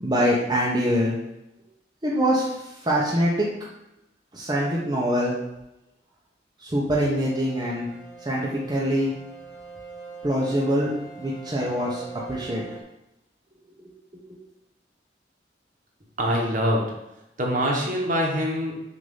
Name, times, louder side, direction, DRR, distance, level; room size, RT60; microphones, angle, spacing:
voice 1, 0.0-1.1 2.0-3.5 4.3-5.4 6.6-7.9 8.2-9.1 10.2-10.9 11.2-12.6 14.1-14.4, equal, 25° right, -5 dB, 0.9 m, -24 dB
sound 1, 7.2-12.8, right 4 dB, 60° left, 1.5 m, -42 dB
voice 2, 16.2-16.9 17.4-18.7, equal, 50° right, -1 dB, 1.4 m, -24 dB
6.3 x 2.9 x 5.6 m, 0.89 s
head